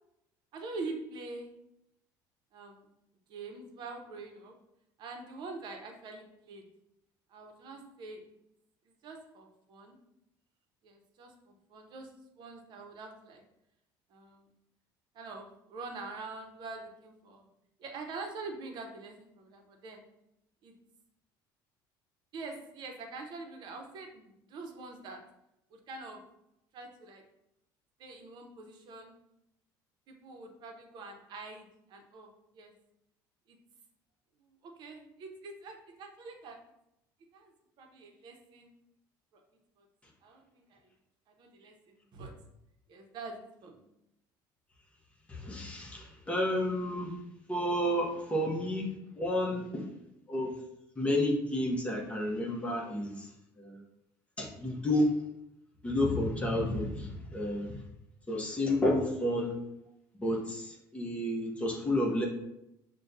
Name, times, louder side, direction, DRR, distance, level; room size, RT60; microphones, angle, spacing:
voice 1, 0.5-1.5 2.5-2.8 3.3-4.5 5.0-6.6 7.3-8.2 8.9-10.0 10.8-12.1 12.4-13.4 14.1-14.5 15.1-17.4 17.8-20.0 20.6-20.7 22.3-25.2 25.7-26.2 26.7-27.2 28.0-29.1 30.1-32.7 33.5-33.6 34.4-36.6 37.3-37.5 37.8-38.7 39.3-39.4 39.8-39.9 40.2-40.8 41.3-42.3 42.9-43.9 48.3-48.4, right 3 dB, 55° right, 3 dB, 0.8 m, -45 dB
voice 2, 45.3-47.1 47.5-48.9 49.2-49.9 50.3-50.5 51.0-53.3 53.6-53.8 54.4-55.1 55.8-57.7 58.3-59.5 60.2-62.3, left 1 dB, 15° left, -1 dB, 0.9 m, -30 dB
6.2 x 2.2 x 2.6 m, 0.83 s
cardioid pair, 125°, 9 cm